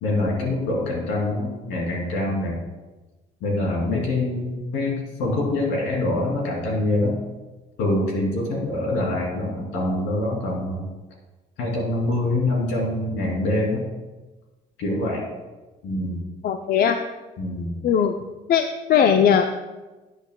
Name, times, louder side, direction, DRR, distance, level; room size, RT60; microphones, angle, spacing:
voice 1, 0.0-2.6 3.4-7.2 7.8-10.9 11.6-13.8 14.8-15.2 15.8-16.2 17.4-17.8, left 1 dB, 80° left, -2 dB, 3.1 m, -25 dB
voice 2, 16.4-17.0 17.8-18.2 18.5-19.5, left 8 dB, 55° left, 7 dB, 0.5 m, -19 dB
12.0 x 8.1 x 2.3 m, 1.2 s
supercardioid pair, 65°, 18 cm